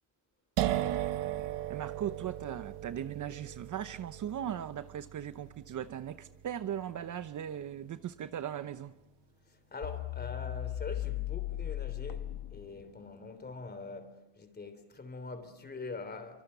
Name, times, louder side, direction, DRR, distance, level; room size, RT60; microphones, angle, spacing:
sound 1, 0.6-8.1, right 13 dB, 80° right, 1.5 m, -37 dB
voice 1, 1.7-8.9, right 10 dB, 45° right, 0.9 m, -38 dB
voice 2, 9.7-16.4, left 3 dB, 25° left, 3.4 m, -43 dB
sound 2, 9.8-13.0, left 14 dB, 65° left, 0.8 m, -37 dB
27.5 x 25.5 x 6.9 m
cardioid pair, 125°, 42 cm